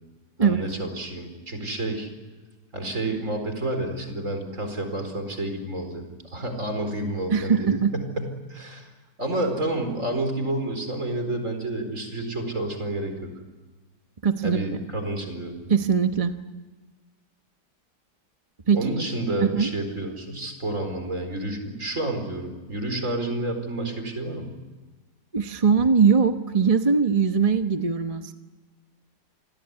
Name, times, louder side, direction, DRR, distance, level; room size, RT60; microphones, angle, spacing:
voice 1, 0.4-2.1 2.7-8.9 9.2-13.3 14.4-15.7 18.7-24.5, right 1 dB, 45° right, 6 dB, 4.9 m, -30 dB
voice 2, 7.3-7.9 14.2-14.6 15.7-16.3 18.7-18.8 19.5-19.7 25.3-28.3, right 6 dB, 25° right, 7 dB, 0.9 m, -21 dB
28.5 x 20.5 x 9.7 m, 1.3 s
omnidirectional pair, 1.9 m